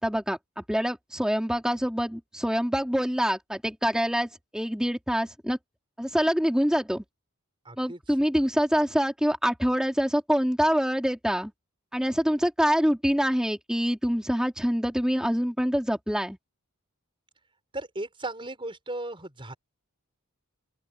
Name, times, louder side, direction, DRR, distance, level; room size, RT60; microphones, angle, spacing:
voice 1, 0.0-5.6 6.0-7.0 7.8-11.5 11.9-16.4, equal, 5° right, 4.2 m, -25 dB
voice 2, 7.6-8.0 17.7-19.5, right 2 dB, 25° right, 6.2 m, -36 dB
open air
head